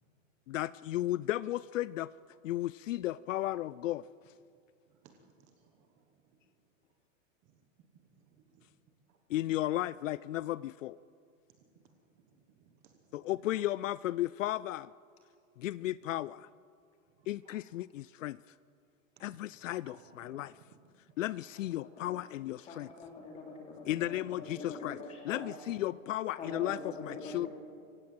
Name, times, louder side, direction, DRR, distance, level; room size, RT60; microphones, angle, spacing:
voice 1, 0.5-2.1 2.4-4.0 9.3-11.0 13.1-14.9 15.6-16.5 17.3-18.4 19.2-20.5 21.2-22.9 23.9-25.0 25.2-27.5, left 15 dB, 70° left, 20 dB, 0.5 m, -34 dB
voice 2, 4.9-6.4 7.4-7.6 8.1-8.7 9.1-9.2 11.6-13.3 17.2-17.6 19.2-20.8 21.3-21.5, right 6 dB, 20° right, 5 dB, 1.2 m, -63 dB
voice 3, 22.7-25.5 26.4-27.5, left 2 dB, 15° left, 1 dB, 3.0 m, -44 dB
25.5 x 16.0 x 7.8 m, 2.3 s
supercardioid pair, 180°, 40 cm